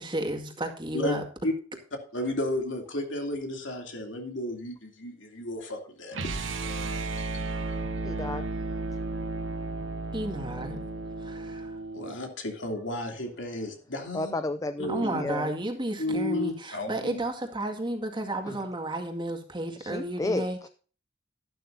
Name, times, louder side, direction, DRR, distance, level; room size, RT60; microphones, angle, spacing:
voice 1, 0.0-1.2 10.1-10.8 11.2-11.8 14.9-20.6, right 1 dB, 25° right, 2.0 m, -32 dB
voice 2, 2.1-6.2 6.6-7.3 11.9-14.3 14.8-15.2 16.0-17.2, left 1 dB, 70° left, 2.9 m, -33 dB
sound 1, 6.1-12.2, right 3 dB, 75° right, 1.2 m, -34 dB
voice 3, 8.0-8.5 14.1-15.5 18.4-18.6 19.8-20.7, left 2 dB, 15° left, 0.4 m, -32 dB
12.0 x 12.0 x 2.7 m
head